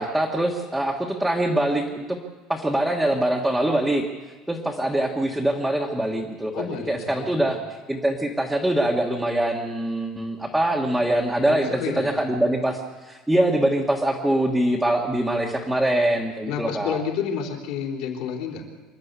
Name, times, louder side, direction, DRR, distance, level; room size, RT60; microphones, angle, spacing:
voice 1, 0.0-2.2 2.5-4.0 4.5-7.6 7.9-12.8 13.0-17.0, right 1 dB, ahead, -2 dB, 1.5 m, -23 dB
voice 2, 6.5-7.5 11.5-12.2 16.5-18.6, left 7 dB, 55° left, 1 dB, 3.9 m, -30 dB
26.5 x 12.0 x 8.3 m, 1.3 s
cardioid pair, 175°, 0 cm